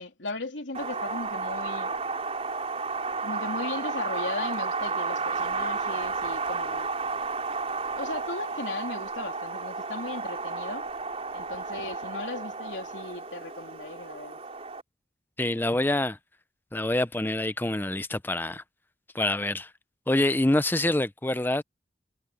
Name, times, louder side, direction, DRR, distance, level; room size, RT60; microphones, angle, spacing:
voice 1, 0.0-1.9 3.2-6.9 8.0-10.9 11.3-14.4, left 3 dB, 85° left, 3.2 m, -37 dB
Wind, 0.7-14.8, right 4 dB, 35° right, 4.7 m, -32 dB
voice 2, 15.4-16.2 16.7-18.6 19.1-19.7 20.1-21.6, left 1 dB, 10° left, 0.5 m, -26 dB
head